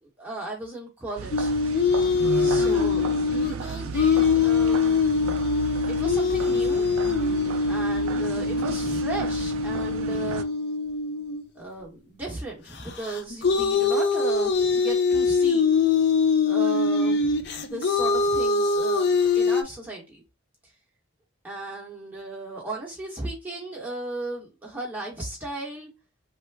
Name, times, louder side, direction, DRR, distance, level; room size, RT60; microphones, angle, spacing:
voice 1, 0.0-1.6 2.3-5.5 5.9-6.8 7.7-10.5 11.5-15.7 16.4-20.2 21.4-25.9, right 2 dB, 10° right, 0.9 m, -36 dB
sound 1, 1.2-10.4, right 6 dB, 80° right, 0.3 m, -35 dB
sound 2, 1.3-11.5 13.0-19.6, left 4 dB, 50° left, 0.4 m, -23 dB
3.3 x 2.1 x 3.2 m
head